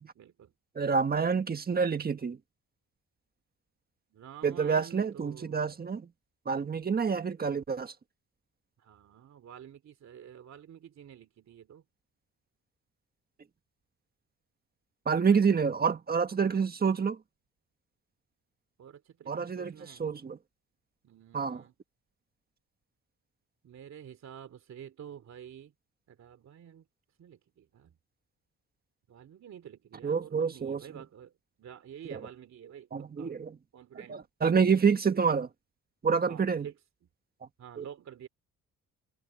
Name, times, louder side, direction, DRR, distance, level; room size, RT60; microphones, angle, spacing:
voice 1, 0.1-0.5 4.1-5.7 8.8-11.8 15.3-15.4 16.5-16.6 18.8-20.0 21.0-21.7 23.6-25.7 26.1-26.8 27.2-27.9 29.1-31.3 31.6-33.4 33.7-34.3 36.3-36.7 37.6-38.3, right 9 dB, 55° right, 2.8 m, -49 dB
voice 2, 0.7-2.4 4.4-6.1 6.4-7.9 15.0-17.2 19.3-20.4 21.3-21.6 30.0-30.8 32.1-32.2 32.9-33.6 34.1-35.5 36.0-36.7 37.8-37.9, right 6 dB, 30° right, 1.6 m, -28 dB
cardioid pair, 140°, 33 cm